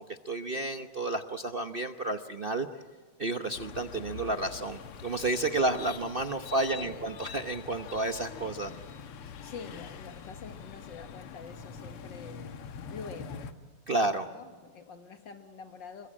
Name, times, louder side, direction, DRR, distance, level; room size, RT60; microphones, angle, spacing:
voice 1, 0.0-2.7 3.2-8.7 13.9-14.3, right 2 dB, 55° right, 0.6 m, -31 dB
sound 1, 3.5-13.5, left 7 dB, 80° left, 2.2 m, -44 dB
voice 2, 6.8-7.2 9.2-13.5 14.3-16.1, left 5 dB, 55° left, 2.3 m, -46 dB
27.5 x 23.5 x 8.7 m
omnidirectional pair, 2.4 m